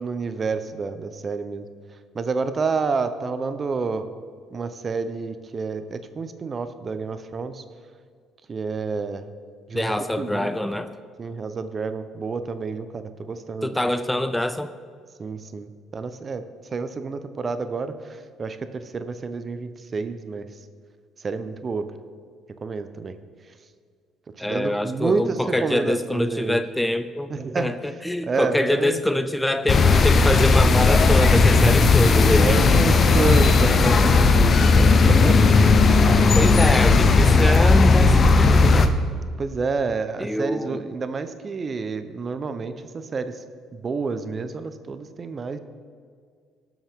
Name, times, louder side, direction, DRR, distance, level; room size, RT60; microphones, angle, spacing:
voice 1, 0.0-1.7 2.1-4.1 4.5-7.6 8.5-9.3 9.7-10.5 11.2-13.7 15.2-16.4 16.7-20.5 21.2-21.8 22.6-23.1 24.4-26.6 27.3-27.7 28.3-29.0 32.4-35.6 36.1-36.3 39.4-43.4 43.7-45.6, right 4 dB, 40° right, 10 dB, 0.8 m, -29 dB
voice 2, 9.7-10.9 13.6-14.7 24.4-32.6 36.4-38.9 40.2-40.8, left 1 dB, 10° left, 10 dB, 0.6 m, -25 dB
sound 1, 29.7-38.9, left 4 dB, 45° left, 0.9 m, -16 dB
18.0 x 7.2 x 3.7 m, 2.1 s
supercardioid pair, 65°, 0 cm